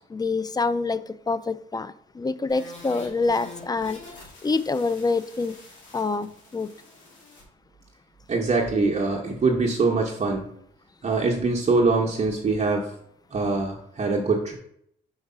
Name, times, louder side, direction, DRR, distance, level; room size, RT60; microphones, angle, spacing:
voice 1, 0.1-4.0 4.4-5.6 5.9-6.7, left 3 dB, 20° left, 14 dB, 0.4 m, -26 dB
sound 1, 2.5-7.4, left 3 dB, 70° left, 2.3 m, -46 dB
voice 2, 8.3-10.5 11.0-12.9 13.3-14.5, right 3 dB, 35° right, -1 dB, 0.9 m, -23 dB
4.7 x 4.6 x 5.5 m, 0.69 s
cardioid pair, 90°, 20 cm